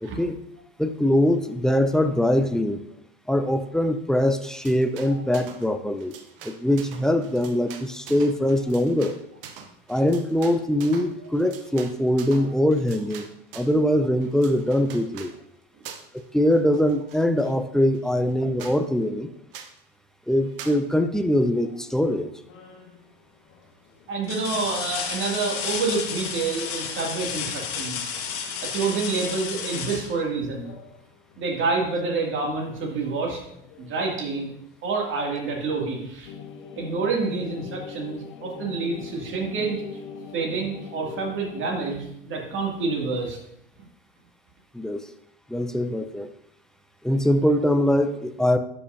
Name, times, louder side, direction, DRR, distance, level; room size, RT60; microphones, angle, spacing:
voice 1, 0.0-0.4 0.8-2.8 3.3-6.1 6.4-9.1 9.9-13.3 13.5-15.3 16.3-19.3 20.3-22.3 44.7-45.1 45.5-46.3 47.0-48.6, left 1 dB, ahead, 8 dB, 0.5 m, -22 dB
sound 1, 4.4-5.7 6.0-13.8 14.2-15.4 15.8-16.2 16.5-17.5 17.9-18.0 18.3-18.4 18.6-18.8 19.5-19.8 20.6-20.8, right 7 dB, 70° right, 0.8 m, -44 dB
sound 2, 22.5-23.0 23.5-23.6 24.2-30.9 32.7-32.8 33.3-34.3 35.6-35.7, left 7 dB, 50° left, 1.4 m, -33 dB
voice 2, 24.1-28.0 28.6-30.7 31.4-33.4 33.8-34.5 34.8-36.3 36.8-39.8 40.3-43.4 43.8-43.9, right 4 dB, 40° right, 0 dB, 2.3 m, -28 dB
sound 3, 36.2-41.9, left 6 dB, 65° left, 0.9 m, -40 dB
12.0 x 5.6 x 2.6 m, 0.75 s
hypercardioid pair, 80°, 29 cm